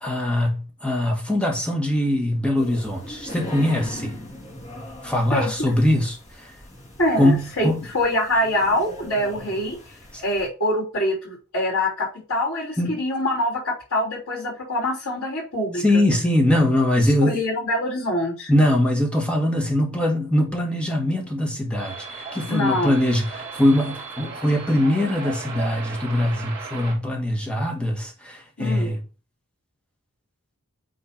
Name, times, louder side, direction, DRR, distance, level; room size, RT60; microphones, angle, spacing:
voice 1, 0.0-4.2 5.0-6.5 7.2-7.8 10.1-10.2 12.8-12.9 15.8-17.4 18.5-29.0, left 1 dB, 5° left, 1.6 m, -22 dB
sound 1, 2.6-10.5, left 1 dB, 35° left, 2.2 m, -40 dB
voice 2, 5.3-5.7 7.0-7.7 7.9-9.8 10.2-15.8 17.2-18.5 22.5-22.9 28.6-28.9, left 1 dB, 65° left, 3.4 m, -24 dB
sound 2, 21.8-26.9, right 5 dB, 25° right, 3.4 m, -36 dB
8.7 x 3.6 x 4.3 m
head